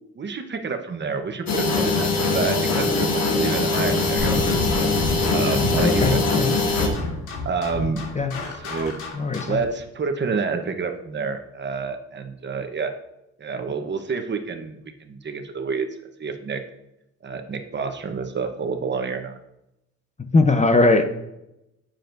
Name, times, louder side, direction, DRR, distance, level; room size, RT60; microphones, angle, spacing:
voice 1, 0.2-4.4 5.3-6.2 6.6-7.0 7.4-8.0 8.6-9.0 9.4-12.9 13.4-15.9 16.2-16.6 17.2-19.3, right 5 dB, 35° right, 6 dB, 1.0 m, -28 dB
sound 1, 1.5-6.9, left 3 dB, 60° left, 1.7 m, -22 dB
sound 2, 4.2-9.7, left 2 dB, 90° left, 2.9 m, -29 dB
voice 2, 5.8-6.5 8.2-8.3 9.1-9.6 20.3-21.0, left 3 dB, 25° left, 7 dB, 0.7 m, -19 dB
10.0 x 7.5 x 2.6 m, 0.87 s
cardioid pair, 90°, 30 cm